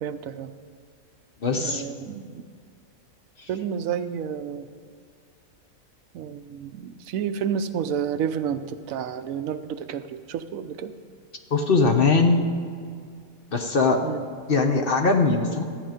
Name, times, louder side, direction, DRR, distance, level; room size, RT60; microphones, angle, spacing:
voice 1, 0.0-0.5 1.5-2.5 3.5-4.7 6.1-10.9 14.0-14.2, right 8 dB, 80° right, 11 dB, 1.0 m, -30 dB
voice 2, 1.4-1.8 11.5-12.4 13.5-14.0 14.5-15.6, left 3 dB, 45° left, 4 dB, 0.9 m, -20 dB
13.5 x 9.1 x 5.1 m, 2.2 s
omnidirectional pair, 1.4 m